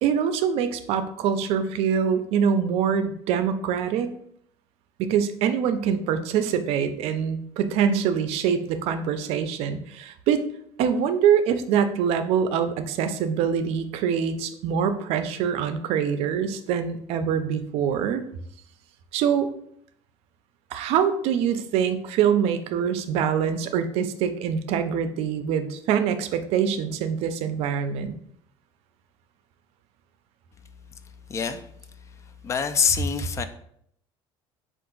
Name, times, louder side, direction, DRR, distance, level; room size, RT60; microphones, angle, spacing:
voice 1, 0.0-4.1 5.0-10.4 10.8-18.2 19.1-19.5 20.7-28.2, right 7 dB, 70° right, 10 dB, 0.5 m, -24 dB
voice 2, 31.3-31.7 32.4-33.4, left 6 dB, 25° left, 10 dB, 0.3 m, -25 dB
4.5 x 2.5 x 3.9 m, 0.69 s
cardioid pair, 140°, 11 cm